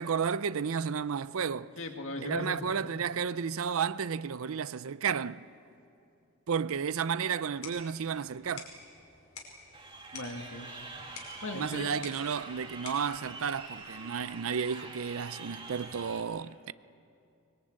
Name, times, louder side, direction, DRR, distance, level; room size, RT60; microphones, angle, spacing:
voice 1, 0.0-1.7 2.2-5.4 6.5-8.7 11.5-16.7, right 6 dB, 65° right, 0.5 m, -32 dB
voice 2, 1.8-2.7 10.1-10.7 11.4-11.9, left 2 dB, 60° left, 2.2 m, -38 dB
sound 1, 7.3-14.3, left 4 dB, 80° left, 5.3 m, -50 dB
Crowd, 9.7-16.2, right 3 dB, 20° right, 2.1 m, -45 dB
23.5 x 21.5 x 8.9 m
head